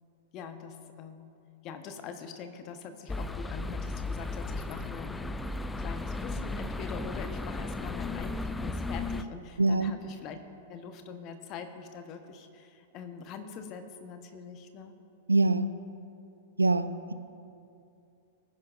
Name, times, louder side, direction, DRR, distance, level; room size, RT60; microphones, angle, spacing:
voice 1, 0.3-1.4 1.6-10.4 10.7-14.9, left 6 dB, 35° left, 7 dB, 1.1 m, -44 dB
sound 1, 3.1-9.2, left 2 dB, 10° left, 0.4 m, -35 dB
voice 2, 9.6-9.9 15.3-15.7 16.6-17.1, right 2 dB, 80° right, 12 dB, 0.5 m, -24 dB
20.5 x 10.5 x 2.5 m, 2.6 s
figure-of-eight pair, 100°, 0 cm